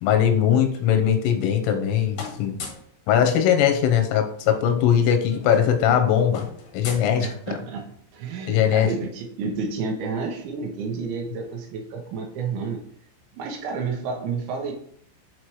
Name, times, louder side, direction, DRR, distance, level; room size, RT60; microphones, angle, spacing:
voice 1, 0.0-2.6 3.1-6.5 6.7-7.3 8.5-8.9, left 9 dB, 90° left, 5 dB, 3.4 m, -20 dB
sound 1, 1.1-1.9 2.1-3.0 4.3-4.4 4.7-4.9 5.2-7.8, left 5 dB, 70° left, 2.0 m, -40 dB
voice 2, 7.2-7.9 8.1-12.8 13.3-14.7, right 5 dB, 75° right, 2 dB, 3.4 m, -30 dB
8.4 x 4.4 x 3.1 m, 0.64 s
omnidirectional pair, 5.5 m